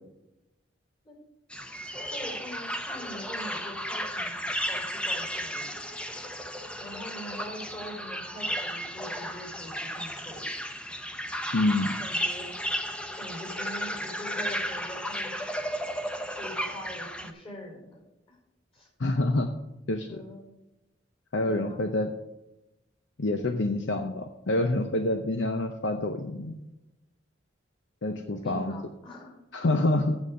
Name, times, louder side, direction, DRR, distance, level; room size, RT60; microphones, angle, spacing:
sound 1, 1.5-17.3, equal, 5° left, 0.7 m, -34 dB
voice 1, 2.1-4.3 4.7-5.7 6.8-10.5 12.0-12.5 13.2-15.4 16.2-18.0 18.3-18.4 18.7-18.9 20.1-20.4 21.4-21.8 24.6-24.9 28.2-29.4, equal, 30° left, 0 dB, 4.4 m, -43 dB
voice 2, 11.5-11.9 19.0-19.5 19.9-20.2 21.3-22.1 23.2-26.6 28.0-28.7 29.5-30.2, left 2 dB, 70° left, 6 dB, 0.7 m, -27 dB
8.9 x 7.2 x 6.4 m, 0.93 s
head